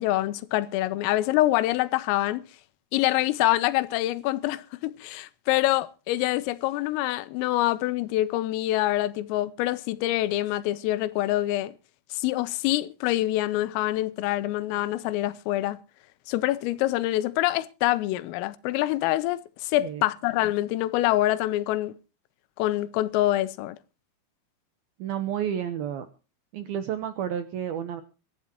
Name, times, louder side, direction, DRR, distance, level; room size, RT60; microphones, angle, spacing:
voice 1, 0.0-2.4 2.9-11.7 12.1-15.8 16.3-21.9 22.6-23.8, left 16 dB, 85° left, 3.5 m, -25 dB
voice 2, 25.0-26.1 26.5-28.0, right 9 dB, 85° right, 2.1 m, -31 dB
24.0 x 12.5 x 3.0 m
omnidirectional pair, 5.9 m